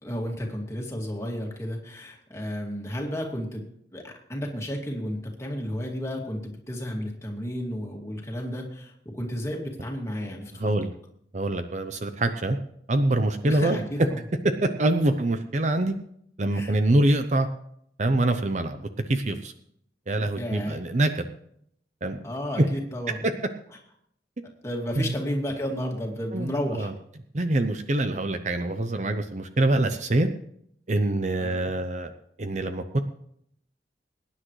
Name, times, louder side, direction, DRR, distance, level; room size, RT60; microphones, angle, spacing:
voice 1, 0.0-3.6 3.9-10.7 13.4-14.2 16.5-16.8 20.4-20.8 22.2-23.2 24.6-26.9 31.4-31.7, equal, 15° left, 0 dB, 2.3 m, -32 dB
voice 2, 10.5-10.9 11.3-12.6 12.9-13.8 14.6-15.9 16.4-17.5 18.0-19.5 20.1-21.3 22.0-22.2 22.6-22.7 25.0-25.1 26.3-26.9 27.3-30.3 30.9-32.1 32.4-33.0, right 1 dB, 40° right, 8 dB, 0.7 m, -25 dB
22.0 x 10.0 x 3.2 m, 0.71 s
head